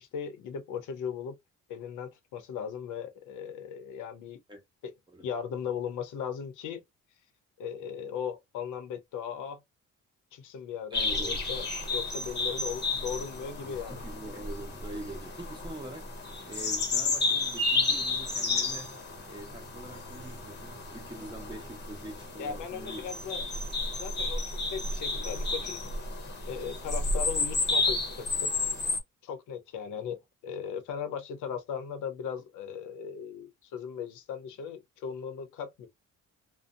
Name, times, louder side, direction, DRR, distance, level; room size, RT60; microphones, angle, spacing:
voice 1, 0.0-1.4 1.7-4.4 4.8-4.9 5.2-6.8 7.6-9.6 10.3-14.0 22.4-23.6 24.0-25.8 26.5-28.5 29.2-35.9, left 7 dB, 90° left, 0.7 m, -38 dB
sound 1, 10.9-29.0, left 3 dB, 35° left, 0.9 m, -32 dB
voice 2, 10.9-11.4 13.6-16.1 16.4-23.1, right 1 dB, 15° right, 1.0 m, -44 dB
2.6 x 2.1 x 2.5 m
cardioid pair, 90°, 30 cm